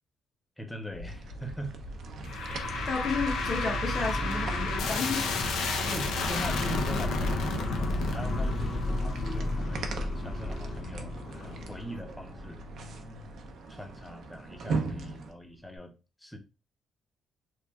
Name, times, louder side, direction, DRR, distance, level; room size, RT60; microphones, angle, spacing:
voice 1, 0.6-1.7 5.7-12.6 13.7-16.4, equal, 5° left, 0.5 m, -42 dB
sound 1, 0.9-13.2, right 1 dB, 60° left, 1.6 m, -41 dB
sound 2, 1.1-15.3, right 4 dB, 65° right, 0.5 m, -41 dB
sound 3, 2.2-13.5, left 3 dB, 80° left, 0.5 m, -32 dB
voice 2, 2.9-5.3 5.6-5.8, left 4 dB, 35° left, 0.8 m, -32 dB
3.1 x 2.4 x 2.3 m
cardioid pair, 115°, 0 cm